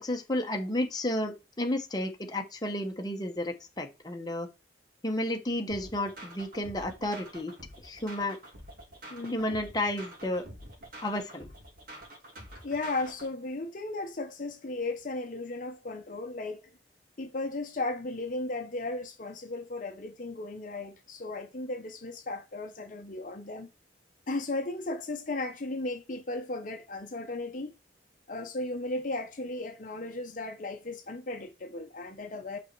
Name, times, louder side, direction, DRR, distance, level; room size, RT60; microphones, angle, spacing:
voice 1, 0.0-4.5 5.0-7.5 7.8-8.4 9.3-10.4 11.0-11.5, left 1 dB, 20° left, 1.0 m, -32 dB
sound 1, 5.7-13.3, right 1 dB, 50° right, 2.8 m, -47 dB
voice 2, 9.1-9.5 12.6-16.7 17.2-23.7 24.3-27.7 28.3-32.6, left 2 dB, 45° left, 0.8 m, -35 dB
5.4 x 4.2 x 4.5 m
head